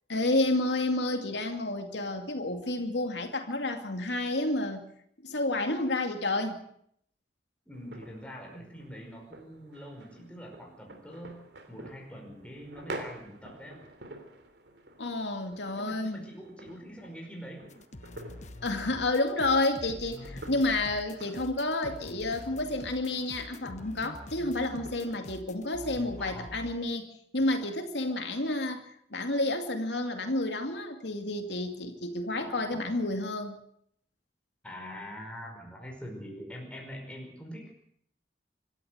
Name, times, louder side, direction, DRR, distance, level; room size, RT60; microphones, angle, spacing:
voice 1, 0.1-4.8 5.2-6.6 15.0-16.2 18.6-27.1 27.3-33.6, left 2 dB, 80° left, 5 dB, 2.5 m, -30 dB
voice 2, 7.6-11.4 11.7-13.8 15.7-17.7 20.2-20.4 21.2-21.4 26.2-26.6 32.4-32.9 34.6-37.7, equal, 5° left, 0 dB, 5.0 m, -44 dB
sound 1, 7.7-25.1, right 2 dB, 75° right, 3.2 m, -49 dB
sound 2, 17.7-26.8, left 1 dB, 40° left, 1.2 m, -46 dB
26.0 x 13.5 x 8.0 m, 0.69 s
head